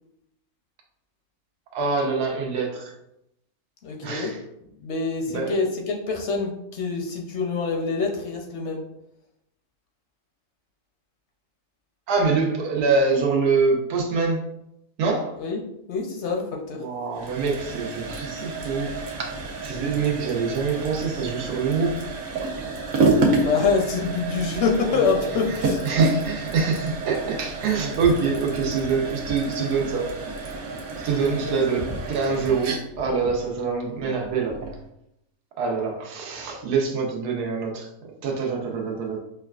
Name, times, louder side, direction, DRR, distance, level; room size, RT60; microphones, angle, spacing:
voice 1, 1.7-2.9 4.0-4.4 5.3-5.7 12.1-14.5 15.0-15.3 16.7-19.3 19.6-22.0 25.5-25.6 25.8-30.1 31.0-34.6 35.6-39.2, right 4 dB, 90° right, 1 dB, 1.3 m, -25 dB
voice 2, 3.8-4.3 4.8-8.8 15.4-15.6 15.9-16.8 23.3-25.8 31.5-31.6, left 4 dB, 65° left, 1 dB, 0.7 m, -25 dB
sound 1, 17.1-34.8, right 3 dB, 70° right, 1.1 m, -29 dB
5.3 x 2.3 x 2.3 m, 0.81 s
omnidirectional pair, 1.6 m